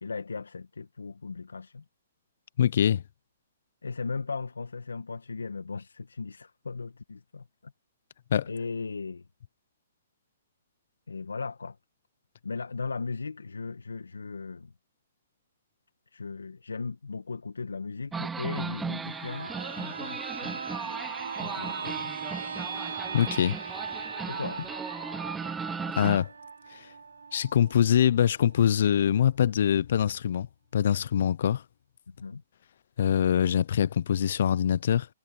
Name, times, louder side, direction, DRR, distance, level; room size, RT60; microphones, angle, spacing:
voice 1, 0.0-1.8 3.8-7.7 8.5-9.2 11.1-11.8 12.4-14.7 16.1-19.5 19.8-20.8 21.3-22.1 24.3-24.6 32.1-32.4, left 4 dB, 85° left, 2.0 m, -37 dB
voice 2, 2.6-3.0 8.3-8.5 23.1-23.6 26.0-26.3 26.7-26.9 27.3-30.5 30.7-31.6 33.0-35.1, left 9 dB, 60° left, 0.9 m, -24 dB
sound 1, 18.1-26.2, right 5 dB, 10° right, 0.3 m, -37 dB
sound 2, 19.0-28.6 28.9-29.0, right 5 dB, 80° right, 1.5 m, -39 dB
hypercardioid pair, 130°, 0 cm